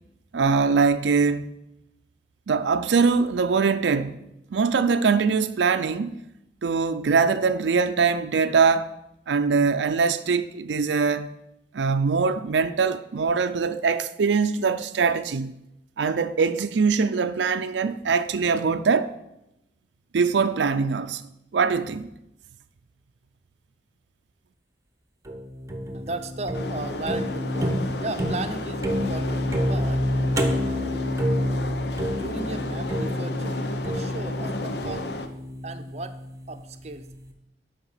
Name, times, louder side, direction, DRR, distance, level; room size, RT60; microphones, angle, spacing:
voice 1, 0.3-1.5 2.5-4.2 4.5-6.2 6.6-8.9 9.3-11.3 11.7-15.5 16.0-19.1 20.1-21.2 21.5-22.1, right 5 dB, 90° right, 0.5 m, -22 dB
sound 1, 25.3-36.5, equal, 20° right, 1.0 m, -28 dB
voice 2, 25.9-30.1 32.1-35.1 35.6-36.2 36.5-37.1, right 2 dB, 40° right, 0.7 m, -36 dB
sound 2, 26.5-35.3, left 2 dB, 65° left, 0.8 m, -34 dB
12.0 x 5.1 x 5.6 m
head